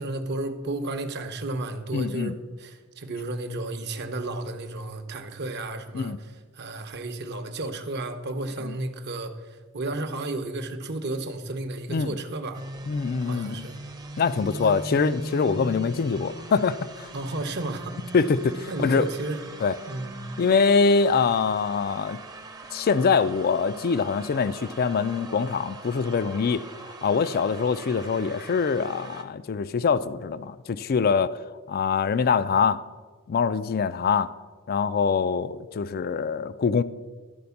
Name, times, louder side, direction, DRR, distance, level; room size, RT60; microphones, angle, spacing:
voice 1, 0.0-12.6 13.2-13.8 14.6-14.7 17.1-18.1 18.7-19.4 19.9-20.2, right 2 dB, 50° right, 0.8 m, -33 dB
voice 2, 1.9-2.3 5.9-6.2 8.6-8.8 11.9-12.1 12.9-13.7 14.2-17.1 18.1-19.1 19.6-19.8 20.4-22.2 22.7-31.4 31.7-32.8 33.3-34.3 34.7-36.8, left 5 dB, 45° left, 0.3 m, -24 dB
sound 1, 12.5-29.2, right 1 dB, 15° right, 0.7 m, -41 dB
12.0 x 4.3 x 7.0 m
head